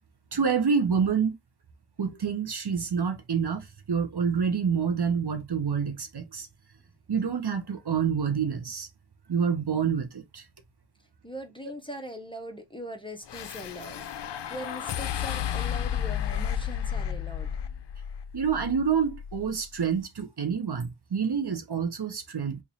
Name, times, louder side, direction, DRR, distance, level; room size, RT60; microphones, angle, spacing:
voice 1, 0.3-1.4 2.0-6.5 7.1-8.9 9.3-10.4 18.3-22.6, right 6 dB, 55° right, 0.8 m, -27 dB
voice 2, 11.2-14.0 14.5-17.5, equal, 10° left, 0.8 m, -40 dB
sound 1, 13.3-19.6, left 9 dB, 60° left, 0.5 m, -33 dB
3.0 x 2.6 x 4.0 m
wide cardioid pair, 55°, 48 cm